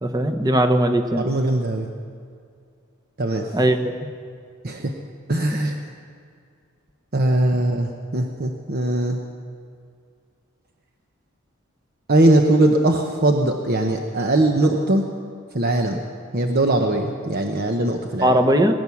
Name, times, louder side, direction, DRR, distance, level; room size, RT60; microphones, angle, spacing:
voice 1, 0.0-1.3 3.5-3.8 18.2-18.7, right 1 dB, 20° right, 5 dB, 1.0 m, -18 dB
voice 2, 1.2-1.9 3.2-3.5 4.6-4.9 5.3-5.8 7.1-9.2 12.1-15.1 15.5-16.0 16.3-18.4, right 1 dB, 45° right, 3 dB, 1.0 m, -20 dB
20.5 x 9.6 x 7.2 m, 2.2 s
head